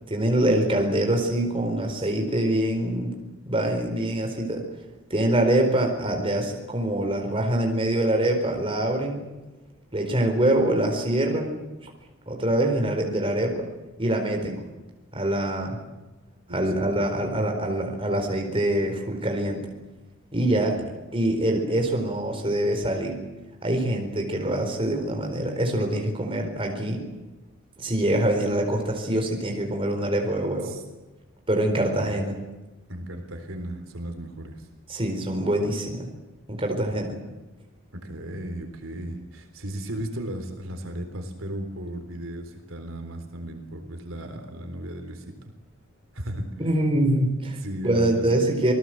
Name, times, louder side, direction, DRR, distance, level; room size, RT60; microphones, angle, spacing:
voice 1, 0.1-3.1 3.4-4.6 5.1-9.2 9.9-11.6 12.3-13.6 14.0-14.6 15.1-15.8 16.5-19.6 20.3-20.8 21.1-23.2 23.6-27.0 27.8-30.7 31.5-32.4 34.9-36.1 36.5-37.2 46.6-47.6 47.8-48.7, right 1 dB, 25° right, 2 dB, 4.3 m, -24 dB
voice 2, 16.5-17.0 20.8-20.9 30.6-30.8 31.7-32.3 32.9-34.7 36.9-37.0 37.9-45.5 46.1-46.5 47.6-48.4, right 1 dB, 65° right, 6 dB, 3.8 m, -36 dB
27.5 x 19.5 x 7.8 m, 1.1 s
head